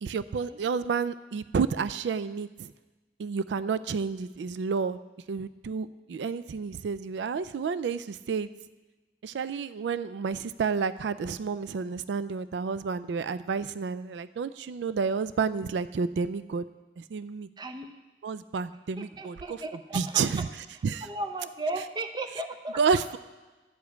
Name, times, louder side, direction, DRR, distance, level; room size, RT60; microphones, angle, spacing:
voice 1, 0.0-2.7 3.2-5.0 5.3-8.5 9.2-16.6 17.0-17.5 18.2-19.6 19.9-20.5 20.8-21.1 22.8-23.2, right 5 dB, 85° right, 15 dB, 0.3 m, -30 dB
voice 2, 17.6-17.9 19.0-20.2 21.0-22.8, right 2 dB, 25° right, 7 dB, 0.6 m, -35 dB
11.5 x 5.0 x 8.1 m, 1.2 s
head